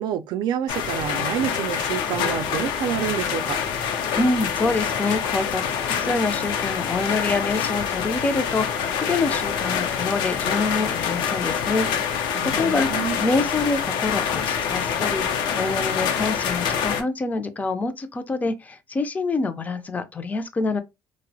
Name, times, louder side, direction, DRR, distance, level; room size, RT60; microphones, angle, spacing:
voice 1, 0.0-3.6 12.3-13.2, right 9 dB, 75° right, 0.4 m, -28 dB
sound 1, 0.7-17.0, left 7 dB, 90° left, 0.5 m, -26 dB
voice 2, 4.2-11.9 12.1-20.8, left 3 dB, 20° left, 0.4 m, -26 dB
2.8 x 2.0 x 2.6 m
cardioid pair, 130°, 8 cm